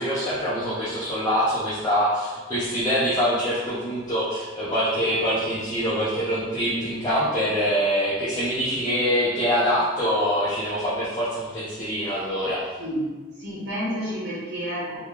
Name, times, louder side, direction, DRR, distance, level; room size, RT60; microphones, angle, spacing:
voice 1, 0.0-12.6, equal, 20° left, -11 dB, 0.6 m, -24 dB
voice 2, 13.4-15.0, equal, 60° right, -6 dB, 1.2 m, -29 dB
3.0 x 2.2 x 3.6 m, 1.3 s
head